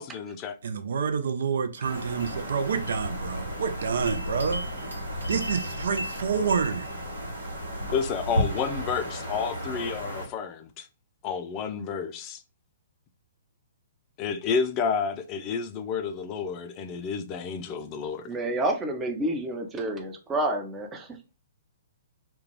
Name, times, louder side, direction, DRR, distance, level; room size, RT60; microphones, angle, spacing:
voice 1, 0.0-0.6 7.9-10.9 11.2-12.4 14.2-18.3, left 6 dB, 30° left, 0.3 m, -30 dB
voice 2, 0.6-4.6 5.3-6.9, right 6 dB, 60° right, 0.4 m, -28 dB
sound 1, 1.8-10.3, equal, 75° right, 1.0 m, -33 dB
voice 3, 18.3-21.1, right 1 dB, 15° right, 0.6 m, -29 dB
2.3 x 2.2 x 3.0 m
figure-of-eight pair, 120°, 0 cm